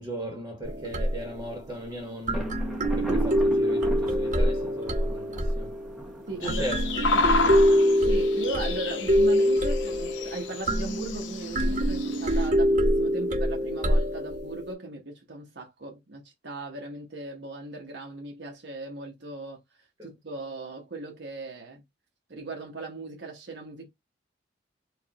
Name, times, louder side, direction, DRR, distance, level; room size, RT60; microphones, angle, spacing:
voice 1, 0.0-2.6 3.0-5.8 6.4-6.8 7.1-7.8 20.0-20.1, equal, 20° right, 1.3 m, -37 dB
sound 1, 0.6-1.5 2.3-6.1 6.5-14.7, equal, 45° right, 1.2 m, -25 dB
Thunder, 2.3-8.0, left 1 dB, ahead, 1.0 m, -41 dB
voice 2, 6.3-6.7 7.1-7.3 8.0-21.8 22.3-23.9, right 2 dB, 65° right, 1.1 m, -38 dB
sound 2, 6.4-12.5, left 3 dB, 85° left, 0.7 m, -31 dB
4.8 x 2.5 x 2.9 m
head